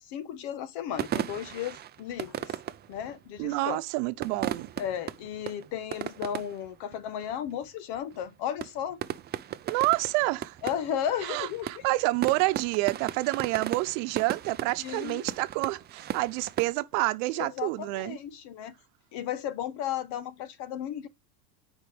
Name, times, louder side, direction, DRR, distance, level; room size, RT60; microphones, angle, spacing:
voice 1, 0.0-2.6 2.9-3.8 4.8-9.0 10.6-11.8 14.8-15.3 17.4-18.7 19.1-21.1, left 9 dB, 60° left, 1.3 m, -34 dB
sound 1, 0.9-3.4 4.1-6.7 6.9-7.0 7.2-7.7 7.9-8.3 8.6-16.7, right 10 dB, 25° right, 0.4 m, -36 dB
voice 2, 3.4-4.7 9.6-10.6 11.2-18.2, right 20 dB, 65° right, 0.9 m, -28 dB
10.0 x 4.8 x 3.4 m
supercardioid pair, 115°, 45 cm